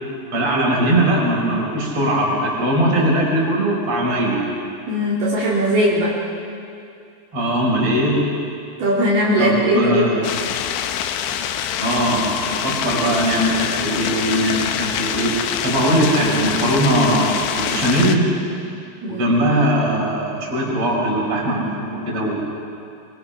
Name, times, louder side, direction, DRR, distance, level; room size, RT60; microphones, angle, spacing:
voice 1, 0.3-4.4 7.3-8.2 9.4-10.3 11.8-18.3 19.1-22.4, right 1 dB, 30° right, -3 dB, 5.5 m, -20 dB
voice 2, 4.9-6.2 8.8-10.1 19.0-19.2, equal, 60° right, -7 dB, 4.7 m, -19 dB
sound 1, 10.2-18.2, left 9 dB, 80° left, 3.1 m, -25 dB
25.0 x 23.5 x 5.9 m, 2.5 s
omnidirectional pair, 5.2 m